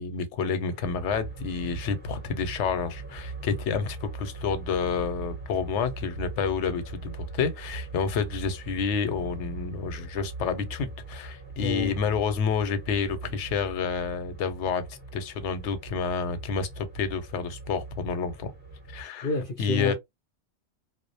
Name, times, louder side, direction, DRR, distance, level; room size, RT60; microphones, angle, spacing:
voice 1, 0.0-14.8 15.1-18.5 18.9-19.3 19.6-19.9, left 6 dB, 85° left, 0.9 m, -29 dB
sound 1, 0.7-19.0, right 3 dB, 10° right, 0.9 m, -41 dB
voice 2, 11.6-11.9 19.2-19.9, left 3 dB, 55° left, 0.7 m, -28 dB
2.3 x 2.0 x 2.6 m
omnidirectional pair, 1.2 m